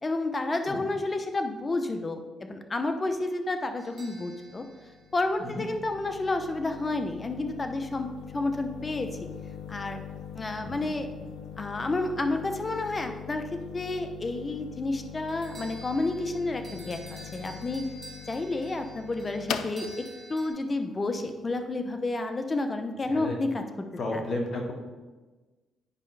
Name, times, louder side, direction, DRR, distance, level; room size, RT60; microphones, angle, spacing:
voice 1, 0.0-4.7 5.1-9.1 9.7-10.0 10.3-11.1 11.6-17.0 17.3-17.9 18.3-23.6 24.1-24.2, left 2 dB, 25° left, 6 dB, 0.8 m, -30 dB
sound 1, 3.8-6.0 15.3-20.5, right 2 dB, 35° right, 1.4 m, -49 dB
sound 2, 4.4-22.0, left 9 dB, 80° left, 0.4 m, -42 dB
voice 2, 10.5-11.2 23.1-23.4 24.0-24.7, left 2 dB, 50° left, 1 dB, 1.5 m, -33 dB
9.9 x 5.3 x 3.3 m, 1.3 s
cardioid pair, 90°, 0 cm